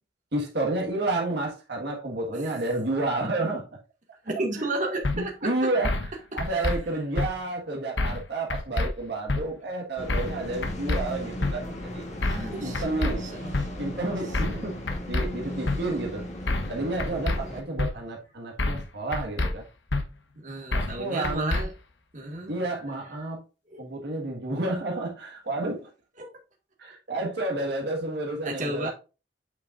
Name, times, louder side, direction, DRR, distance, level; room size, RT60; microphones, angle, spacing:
voice 1, 0.3-3.7 4.6-4.7 5.1-5.9 6.3-12.0 12.6-13.2 13.8-14.8 15.1-16.2 16.7-19.6 20.7-21.5 22.5-23.4 23.8-25.9 26.8-28.9, right 2 dB, 65° right, 1.7 m, -30 dB
voice 2, 4.2-5.7 6.3-6.7 12.2-12.8 13.2-13.5 20.4-21.7 22.1-22.6 23.7-23.8 26.2-26.3 28.4-28.9, right 2 dB, 45° right, 1.8 m, -33 dB
sound 1, 5.0-5.2 5.8-6.1 6.4-6.8 7.2-7.3 8.0-8.2 8.5-8.9 9.3-9.4 10.1-10.4 10.6-11.0 11.4-11.5 12.2-12.5 12.7-13.1 13.5-13.7 14.3-14.6 14.9-15.3 15.7-15.8 16.5-16.7 17.0-17.4 17.8-17.9 18.6-18.9 19.1-19.5 19.9-20.0 20.7-21.0 21.2-21.6, left 2 dB, 75° left, 1.1 m, -26 dB
sound 2, 10.0-17.6, equal, 40° left, 1.8 m, -37 dB
8.3 x 5.7 x 2.5 m
head